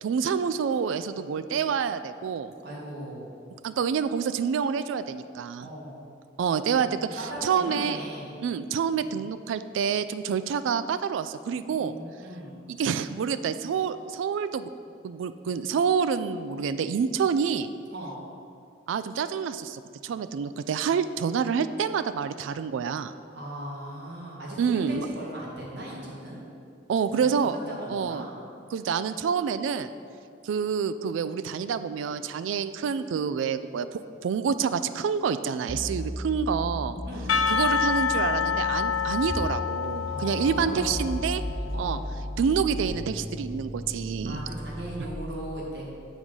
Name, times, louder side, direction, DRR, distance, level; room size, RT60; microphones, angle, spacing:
voice 1, 0.0-2.5 3.6-5.7 6.4-8.0 8.4-12.0 12.7-14.7 15.0-17.7 18.9-23.1 24.6-25.1 26.9-27.6 27.9-28.3 28.7-29.9 30.4-37.0 37.5-41.4 41.8-42.0 42.4-44.4, right 6 dB, 85° right, 12 dB, 0.3 m, -27 dB
voice 2, 2.6-3.4 5.6-6.0 7.1-8.3 9.0-9.2 11.7-12.6 17.9-18.2 23.3-26.4 27.1-28.3 37.0-37.4 40.1-40.9 41.7-42.0 44.2-45.9, right 1 dB, 60° right, -5 dB, 1.6 m, -38 dB
sound 1, 35.7-45.3, left 1 dB, 5° left, 0.3 m, -35 dB
Percussion / Church bell, 37.3-41.8, left 6 dB, 90° left, 0.3 m, -28 dB
7.1 x 3.8 x 6.1 m, 2.4 s
head